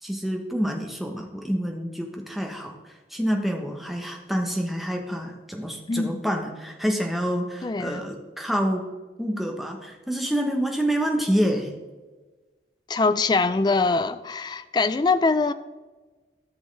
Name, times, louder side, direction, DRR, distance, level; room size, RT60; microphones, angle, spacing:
voice 1, 0.0-8.8 9.2-11.8, equal, ahead, 0.9 m, -27 dB
voice 2, 5.9-6.2 7.6-8.0 12.9-15.5, left 3 dB, 25° left, 0.3 m, -23 dB
13.0 x 6.2 x 3.2 m
head